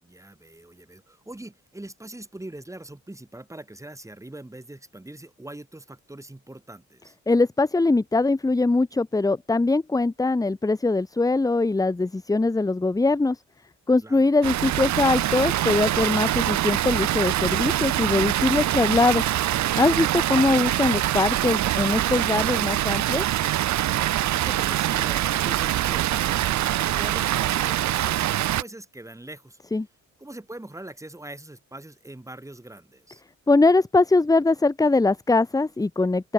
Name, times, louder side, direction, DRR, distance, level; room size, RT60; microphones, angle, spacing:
voice 1, 0.0-7.2 14.0-14.3 24.4-29.6 30.2-33.2, right 1 dB, 10° right, 6.0 m, -42 dB
voice 2, 7.3-13.4 13.9-19.3 19.8-23.2 29.7-29.9 33.5-36.3, left 3 dB, 10° left, 0.9 m, -22 dB
Water, 14.4-28.6, right 13 dB, 70° right, 0.9 m, -24 dB
open air
cardioid pair, 90°, 30 cm